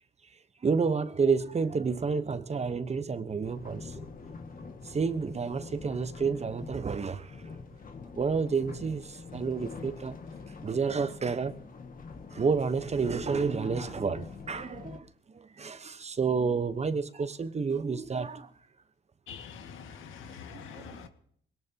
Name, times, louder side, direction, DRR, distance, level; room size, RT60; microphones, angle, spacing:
voice 1, 0.6-4.1 4.8-7.4 8.1-10.2 10.6-11.5 12.3-18.5 20.5-21.1, right 5 dB, 35° right, 1.1 m, -30 dB
sound 1, 3.4-15.0, left 4 dB, 45° left, 1.9 m, -45 dB
voice 2, 19.3-21.1, left 7 dB, 80° left, 1.9 m, -45 dB
21.5 x 18.0 x 2.9 m
cardioid pair, 90°, 20 cm